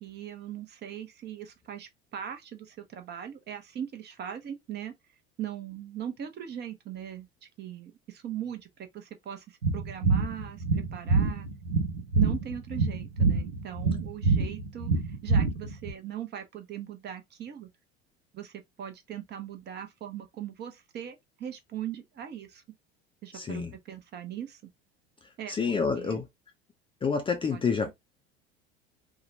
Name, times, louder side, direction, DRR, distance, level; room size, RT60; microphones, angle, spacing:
voice 1, 0.0-4.9 5.4-7.3 7.6-11.5 12.1-17.7 18.3-18.5 18.8-22.6 23.2-24.6 25.4-26.2 27.5-27.9, right 10 dB, 30° right, 0.7 m, -40 dB
Batida Cardiaca Heart Beat, 9.6-15.9, right 4 dB, 90° right, 0.7 m, -26 dB
voice 2, 23.3-23.7 25.5-26.2 27.0-27.9, left 5 dB, 15° left, 0.5 m, -28 dB
2.8 x 2.1 x 2.6 m
figure-of-eight pair, 70°, 32 cm